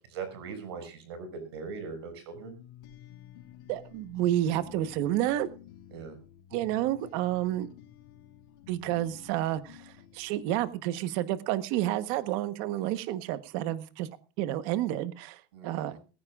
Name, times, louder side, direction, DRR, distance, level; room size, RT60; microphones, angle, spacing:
voice 1, 0.1-2.6 5.9-6.2 15.5-15.9, right 5 dB, 80° right, 8 dB, 6.5 m, -40 dB
sound 1, 2.3-11.1, left 11 dB, 60° left, 4.0 m, -52 dB
voice 2, 3.7-5.5 6.5-7.7 8.7-14.1 14.4-16.0, right 13 dB, 45° right, 14 dB, 1.1 m, -30 dB
20.5 x 15.0 x 2.4 m, 0.35 s
supercardioid pair, 170°, 13 cm